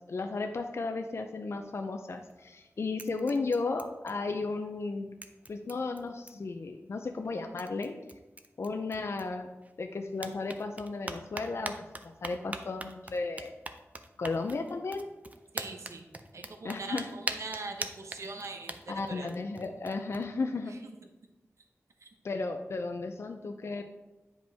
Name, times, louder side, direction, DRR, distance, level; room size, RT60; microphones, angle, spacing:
voice 1, 0.1-5.2 5.5-7.9 8.6-9.5 9.8-11.7 12.0-13.5 14.2-15.1 16.6-17.1 18.9-20.8 22.2-23.8, left 3 dB, 60° left, 5 dB, 0.5 m, -34 dB
sound 1, 2.1-2.6 3.0-4.5 4.8-4.9 5.2-6.6 7.2-7.3 7.6-9.7 10.1-20.2, right 2 dB, 30° right, 0.5 m, -43 dB
voice 2, 15.5-16.1 16.3-19.3 20.7-20.9 22.0-22.1, right 3 dB, 75° right, 5 dB, 0.8 m, -42 dB
8.9 x 5.2 x 3.5 m, 1.0 s
wide cardioid pair, 90°, 5 cm